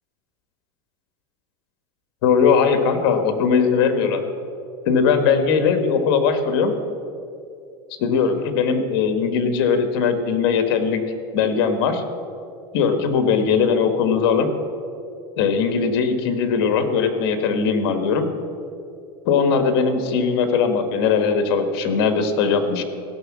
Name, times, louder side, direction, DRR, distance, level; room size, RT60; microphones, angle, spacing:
voice 1, 2.2-4.2 4.8-6.7 8.0-11.0 11.3-12.0 12.7-14.5 15.4-18.3 19.2-22.8, left 6 dB, 70° left, 8 dB, 1.4 m, -19 dB
16.0 x 6.1 x 7.4 m, 2.5 s
supercardioid pair, 140°, 13 cm